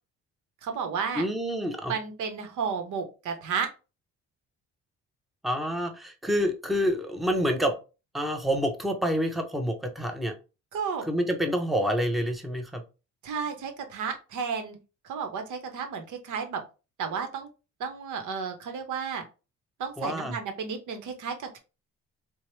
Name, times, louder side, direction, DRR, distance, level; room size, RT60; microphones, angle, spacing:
voice 1, 0.6-1.3 1.9-3.7 10.7-11.1 13.2-14.8 15.0-16.6 17.0-17.5 17.8-19.2 19.8-21.6, right 6 dB, 80° right, 6 dB, 0.9 m, -32 dB
voice 2, 1.2-2.0 5.4-7.7 8.1-10.4 11.1-12.8 20.0-20.4, equal, ahead, 4 dB, 0.6 m, -27 dB
4.5 x 2.1 x 3.0 m, 0.31 s
cardioid pair, 90°, 30 cm